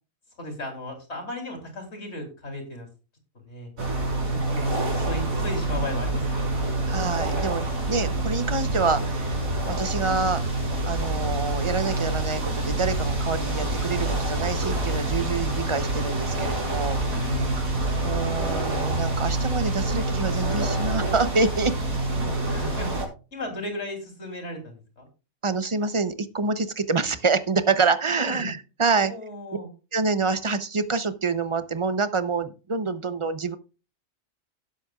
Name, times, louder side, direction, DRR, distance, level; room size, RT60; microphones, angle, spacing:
voice 1, 0.4-2.9 3.4-3.7 4.2-6.6 17.1-17.8 22.5-23.0 23.3-25.1 28.2-28.5 28.9-29.7, left 1 dB, 50° left, 3 dB, 3.5 m, -35 dB
sound 1, 3.8-23.1, right 2 dB, 85° right, 4.3 m, -27 dB
voice 2, 6.9-9.4 9.7-10.4 10.8-17.0 18.0-21.7 25.4-29.1 29.9-33.6, right 4 dB, 30° right, 11 dB, 0.7 m, -26 dB
17.5 x 7.8 x 2.4 m, 0.32 s
omnidirectional pair, 1.4 m